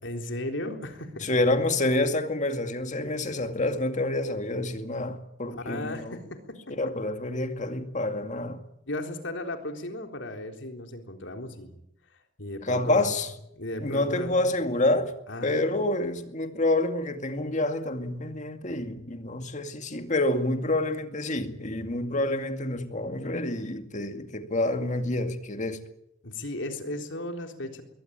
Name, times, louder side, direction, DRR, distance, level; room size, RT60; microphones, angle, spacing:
voice 1, 0.0-1.3 5.5-6.4 8.9-11.7 12.4-13.1 13.6-14.5 15.3-15.9 26.2-27.8, left 1 dB, 75° left, 3.8 m, -35 dB
voice 2, 1.2-6.2 6.7-8.6 12.6-13.3 13.8-15.1 15.4-25.8, left 2 dB, 40° left, 2.2 m, -28 dB
22.0 x 18.5 x 9.0 m
head